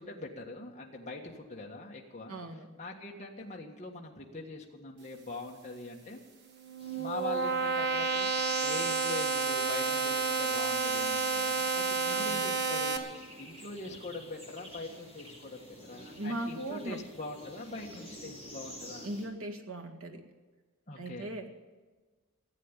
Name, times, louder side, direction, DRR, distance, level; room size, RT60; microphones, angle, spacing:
voice 1, 0.0-2.4 2.8-6.2 7.0-15.6 15.9-19.1 20.9-21.3, left 2 dB, 30° left, -1 dB, 1.6 m, -43 dB
voice 2, 2.3-2.7 12.1-12.4 16.0-17.0 19.0-20.2 21.0-21.5, right 1 dB, 80° right, 4 dB, 1.9 m, -39 dB
sound 1, 6.5-13.0, right 4 dB, 50° right, 1.5 m, -30 dB
sound 2, 6.8-19.3, equal, 25° right, 6.0 m, -51 dB
15.5 x 8.6 x 9.9 m, 1.3 s
head